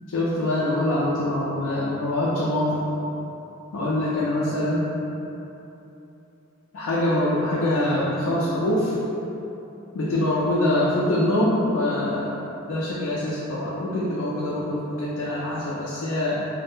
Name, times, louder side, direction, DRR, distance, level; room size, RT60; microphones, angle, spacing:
voice 1, 0.1-2.8 3.7-4.9 6.7-9.0 9.9-12.4 12.7-16.4, left 1 dB, 85° left, -7 dB, 0.4 m, -24 dB
3.6 x 2.0 x 2.5 m, 3.0 s
head